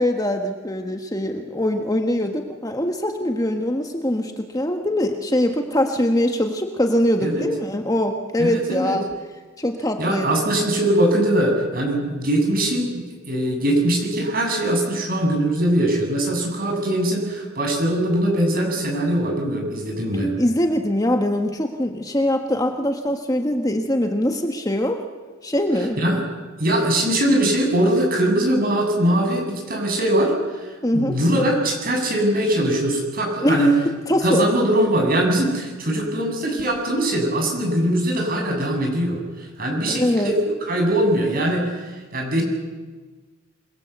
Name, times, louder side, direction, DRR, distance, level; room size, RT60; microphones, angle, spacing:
voice 1, 0.0-9.0 9.6-10.3 20.4-25.0 25.4-26.0 30.8-31.2 33.4-33.6 34.1-34.5 39.8-40.3, left 1 dB, 15° left, 4 dB, 1.5 m, -22 dB
voice 2, 8.4-9.0 10.0-20.3 26.0-26.2 26.6-30.3 30.6-30.7 30.9-33.7 34.2-40.4 40.7-41.6 41.9-42.4, right 1 dB, 45° right, 2 dB, 7.4 m, -21 dB
28.0 x 21.5 x 8.1 m, 1.4 s
head